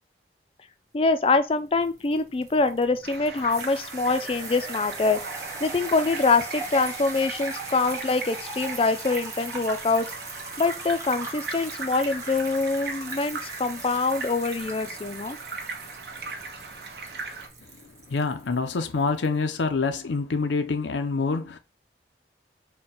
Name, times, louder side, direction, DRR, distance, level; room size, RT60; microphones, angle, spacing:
voice 1, 0.9-5.2 5.6-10.1 10.6-15.4, left 3 dB, 30° left, 0.3 m, -24 dB
sound 1, 1.3-19.3, right 3 dB, 15° right, 0.7 m, -40 dB
sound 2, 3.0-17.5, right 4 dB, 65° right, 0.8 m, -39 dB
voice 2, 18.1-21.6, left 4 dB, 85° left, 0.6 m, -26 dB
4.2 x 2.2 x 3.7 m
head